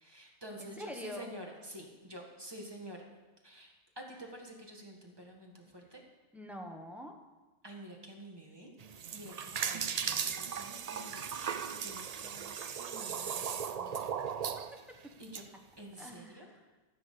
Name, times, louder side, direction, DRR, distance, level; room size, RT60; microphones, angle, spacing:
voice 1, 0.0-3.0 3.4-6.0 7.6-8.7 9.1-14.1 15.2-15.5 15.8-16.5, right 1 dB, 20° right, 0 dB, 1.8 m, -49 dB
voice 2, 0.6-1.3 6.3-7.2 14.7-15.1 16.0-16.6, equal, ahead, 2 dB, 1.1 m, -45 dB
sound 1, 8.8-15.4, right 7 dB, 50° right, 0.5 m, -37 dB
14.0 x 6.4 x 6.7 m, 1.2 s
omnidirectional pair, 1.2 m